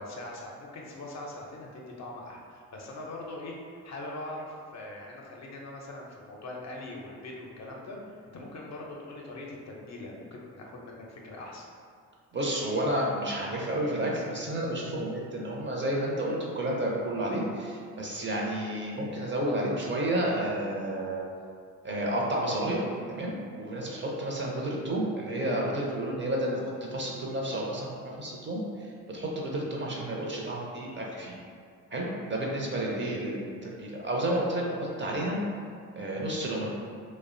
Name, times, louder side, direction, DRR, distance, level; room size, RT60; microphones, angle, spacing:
voice 1, 0.0-11.6 32.9-33.2, left 1 dB, 45° left, -2 dB, 0.5 m, -42 dB
voice 2, 12.3-21.3 21.8-22.8 23.1-26.6 26.9-31.3 31.9-35.4 36.0-36.7, right 1 dB, 30° right, -3 dB, 0.5 m, -31 dB
2.5 x 2.0 x 2.5 m, 2.2 s
supercardioid pair, 55°, 38 cm